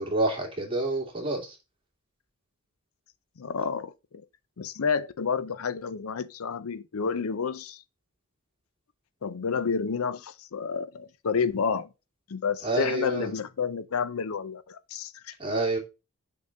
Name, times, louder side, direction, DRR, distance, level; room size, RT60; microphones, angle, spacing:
voice 1, 0.0-1.6 12.6-13.3 15.4-15.8, right 2 dB, 25° right, 2.3 m, -28 dB
voice 2, 3.4-4.2 4.6-7.8 9.2-11.9 12.3-15.4, left 6 dB, 75° left, 0.5 m, -30 dB
6.3 x 3.8 x 5.6 m
head